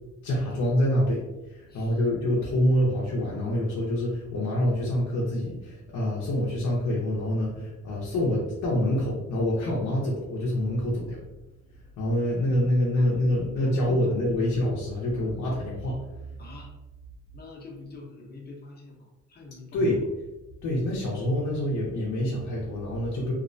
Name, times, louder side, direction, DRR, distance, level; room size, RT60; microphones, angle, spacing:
voice 1, 0.2-1.2 1.5-11.2 12.0-16.4 19.7-20.0 20.6-23.3, left 1 dB, 70° left, -5 dB, 0.7 m, -26 dB
voice 2, 1.7-2.1 7.5-7.7 12.9-13.2 13.6-14.5 15.1-15.4 16.4-16.7 17.3-20.1, left 3 dB, 35° left, -2 dB, 0.8 m, -46 dB
2.5 x 2.0 x 2.5 m, 1.0 s
cardioid pair, 90°, 30 cm